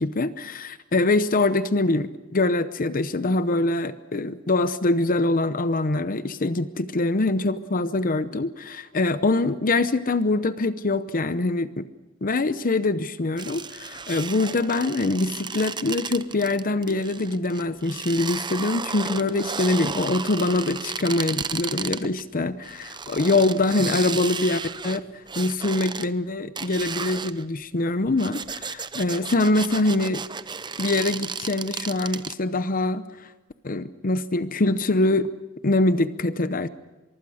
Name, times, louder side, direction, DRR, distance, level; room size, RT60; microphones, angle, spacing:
voice 1, 0.0-11.8 12.2-25.0 25.4-30.2 30.8-33.0 33.6-35.3 35.6-36.7, left 2 dB, 40° left, 13 dB, 0.8 m, -24 dB
sound 1, 13.4-22.2 22.6-26.1 26.6-27.5 28.1-32.3, right 5 dB, 20° right, 0.7 m, -34 dB
24.0 x 24.0 x 6.4 m, 1.1 s
head